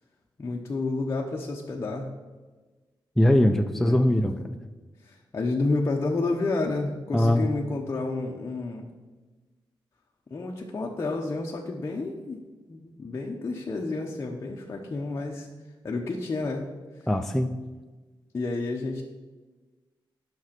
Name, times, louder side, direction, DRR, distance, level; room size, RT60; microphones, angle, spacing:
voice 1, 0.4-2.1 3.7-4.0 5.0-8.9 10.3-12.4 12.7-15.5 15.8-16.7 18.3-19.0, left 3 dB, 30° left, -1 dB, 0.8 m, -30 dB
voice 2, 3.2-4.5 7.1-7.5 17.1-17.5, left 1 dB, 5° left, 6 dB, 0.4 m, -21 dB
9.2 x 6.1 x 5.8 m, 1.3 s
wide cardioid pair, 140°, 9 cm